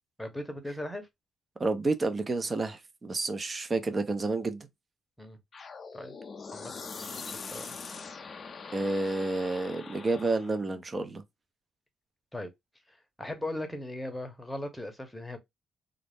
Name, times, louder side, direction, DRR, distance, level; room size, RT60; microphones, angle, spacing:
voice 1, 0.2-1.1 5.2-5.4 5.9-6.1 6.5-6.7 7.0-7.2 7.5-7.6 12.3-12.5 13.2-15.4, left 1 dB, 5° left, 0.8 m, -38 dB
voice 2, 1.6-4.7 8.7-11.2, right 3 dB, 30° right, 0.5 m, -30 dB
sound 1, 5.5-10.6, left 5 dB, 40° left, 0.5 m, -42 dB
2.4 x 2.0 x 3.4 m
cardioid pair, 90°, 0 cm